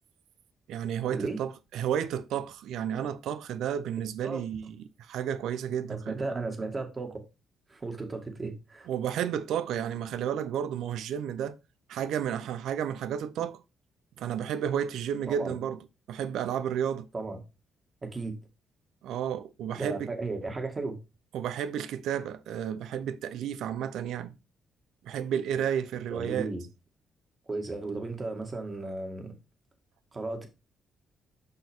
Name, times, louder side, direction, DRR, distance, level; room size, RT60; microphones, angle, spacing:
voice 1, 0.7-6.2 8.9-11.6 11.9-13.6 14.2-15.8 16.1-17.1 19.0-20.1 21.3-24.4 25.0-26.5, right 9 dB, 80° right, 0.6 m, -32 dB
voice 2, 5.9-7.2 7.7-8.9 15.3-15.6 17.1-17.4 18.0-18.4 19.8-21.0 26.1-26.6 27.5-29.3 30.1-30.5, right 3 dB, 30° right, 1.8 m, -35 dB
5.6 x 5.5 x 3.5 m
cardioid pair, 90°, 0 cm